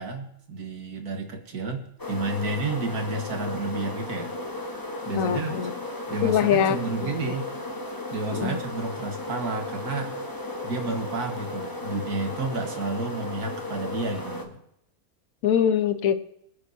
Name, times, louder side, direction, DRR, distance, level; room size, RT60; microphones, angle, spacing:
voice 1, 0.0-4.3 5.0-5.6 6.1-7.5 8.1-10.2 10.6-14.6, right 2 dB, 85° right, 4 dB, 2.1 m, -31 dB
sound 1, 2.0-14.5, left 2 dB, 15° left, 1.2 m, -35 dB
voice 2, 5.1-5.7 6.2-6.8 7.0-7.3 8.3-8.6 15.4-16.1, left 8 dB, 65° left, 11 dB, 1.2 m, -23 dB
22.5 x 9.2 x 2.8 m, 0.77 s
omnidirectional pair, 1.6 m